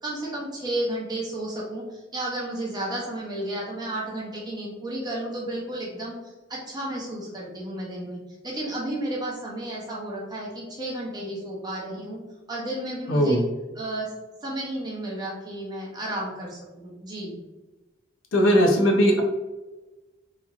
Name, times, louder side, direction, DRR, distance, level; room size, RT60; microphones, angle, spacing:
voice 1, 0.0-12.2 12.5-13.4 13.8-14.1 14.4-17.4, right 1 dB, 20° right, -4 dB, 0.7 m, -32 dB
voice 2, 13.1-13.4 18.3-19.2, equal, 90° left, 2 dB, 0.6 m, -19 dB
2.9 x 2.5 x 2.4 m, 1.1 s
head